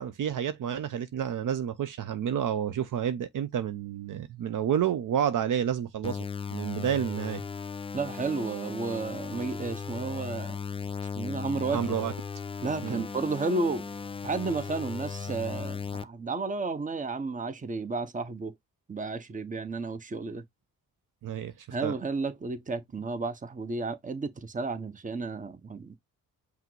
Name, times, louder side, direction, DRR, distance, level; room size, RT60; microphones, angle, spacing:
voice 1, 0.0-6.3 6.5-7.4 11.7-12.1 12.8-13.0 21.2-22.0, right 9 dB, 60° right, 0.6 m, -30 dB
sound 1, 6.0-16.0, left 5 dB, 15° left, 0.3 m, -37 dB
voice 2, 7.9-10.6 11.1-11.9 12.6-13.9 14.2-18.5 18.9-20.4 21.7-26.0, right 3 dB, 20° right, 0.8 m, -32 dB
5.7 x 2.0 x 4.5 m
cardioid pair, 65°, 36 cm